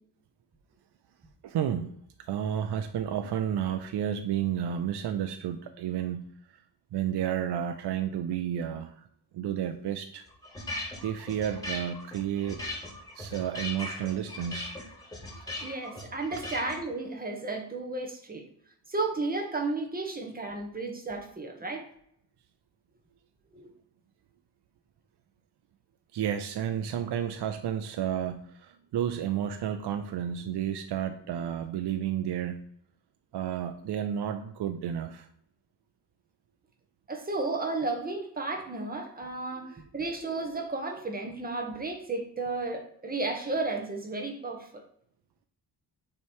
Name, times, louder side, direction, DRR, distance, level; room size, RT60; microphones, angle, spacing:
voice 1, 1.4-1.9 2.2-6.6 6.9-9.1 9.3-10.3 11.0-12.6 13.1-14.7 26.1-32.6 33.3-35.3, right 9 dB, 70° right, 8 dB, 0.6 m, -31 dB
sound 1, 10.3-16.8, left 1 dB, 10° left, 1.6 m, -39 dB
voice 2, 15.6-18.4 18.9-21.8 23.5-23.7 37.1-44.8, right 3 dB, 20° right, 3 dB, 1.2 m, -33 dB
8.6 x 3.2 x 4.5 m, 0.70 s
wide cardioid pair, 115°, 42 cm